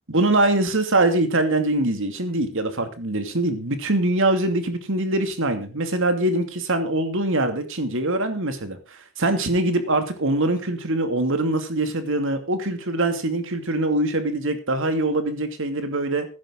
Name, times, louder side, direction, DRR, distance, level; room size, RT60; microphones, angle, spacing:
voice 1, 0.1-16.3, right 2 dB, 65° right, 8 dB, 2.6 m, -23 dB
16.0 x 11.5 x 3.9 m, 0.31 s
head